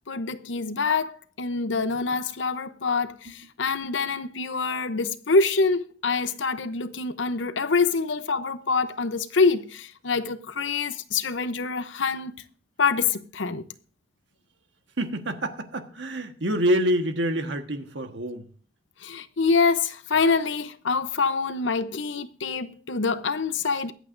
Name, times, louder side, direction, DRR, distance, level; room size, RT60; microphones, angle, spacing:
voice 1, 0.1-12.4 12.8-13.6 19.0-23.9, left 4 dB, 80° left, 0.8 m, -25 dB
voice 2, 15.0-18.5, equal, 70° right, 1.4 m, -27 dB
23.0 x 8.3 x 2.6 m
head